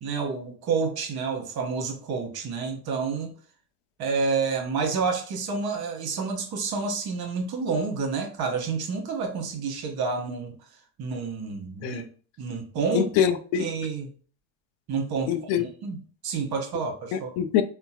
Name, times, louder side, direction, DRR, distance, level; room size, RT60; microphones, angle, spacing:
voice 1, 0.0-3.3 4.0-10.6 11.0-12.0 12.4-13.1 13.6-14.1 14.9-16.0 16.2-17.3, right 5 dB, 50° right, 1.1 m, -29 dB
voice 2, 12.9-13.7 15.3-15.7 17.1-17.6, left 9 dB, 65° left, 0.6 m, -24 dB
3.8 x 2.2 x 2.8 m
supercardioid pair, 75°, 48 cm